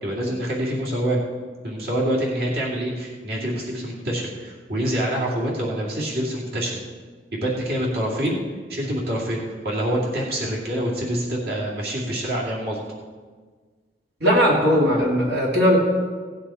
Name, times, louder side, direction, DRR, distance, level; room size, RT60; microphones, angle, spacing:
voice 1, 0.0-1.2 1.6-6.8 7.3-8.4 8.7-12.8, right 1 dB, 60° right, -4 dB, 2.5 m, -26 dB
voice 2, 14.2-15.8, equal, 75° right, -3 dB, 2.4 m, -18 dB
17.0 x 9.2 x 4.3 m, 1.5 s
head